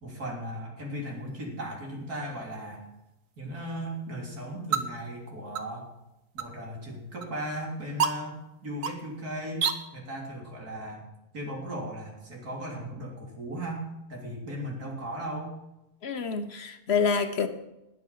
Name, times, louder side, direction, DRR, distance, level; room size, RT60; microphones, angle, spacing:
voice 1, 0.0-2.9 3.4-5.9 6.3-11.0 11.3-15.5, right 1 dB, 90° right, -2 dB, 4.0 m, -37 dB
sound 1, 1.1-9.8, right 6 dB, 65° right, 1.4 m, -36 dB
voice 2, 16.0-17.5, left 6 dB, 45° left, 9 dB, 1.3 m, -27 dB
19.5 x 7.3 x 5.8 m, 0.92 s
omnidirectional pair, 1.6 m